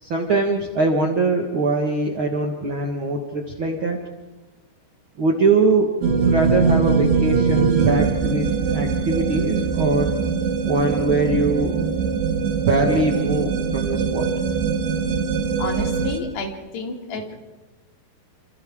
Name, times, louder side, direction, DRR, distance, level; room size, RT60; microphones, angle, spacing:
voice 1, 0.0-4.0 5.2-5.9 6.2-10.1 10.6-11.8 12.6-14.3, right 3 dB, 65° right, 1 dB, 1.3 m, -22 dB
sound 1, 6.0-16.2, right 5 dB, 90° right, 4.0 m, -22 dB
voice 2, 15.6-17.3, left 3 dB, 70° left, 1 dB, 4.7 m, -31 dB
29.0 x 27.5 x 3.7 m, 1.1 s
omnidirectional pair, 4.9 m